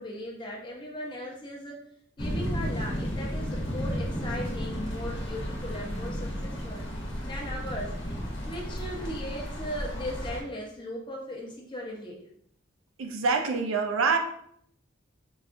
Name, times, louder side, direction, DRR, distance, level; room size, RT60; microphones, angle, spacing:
voice 1, 0.0-1.8 2.2-6.8 7.2-7.9 8.5-12.2, equal, 25° left, -2 dB, 0.7 m, -38 dB
sound 1, 2.2-10.4, equal, 60° left, 1.0 m, -33 dB
voice 2, 13.0-14.2, right 4 dB, 85° right, 5 dB, 0.5 m, -25 dB
4.9 x 2.3 x 2.5 m, 0.69 s
head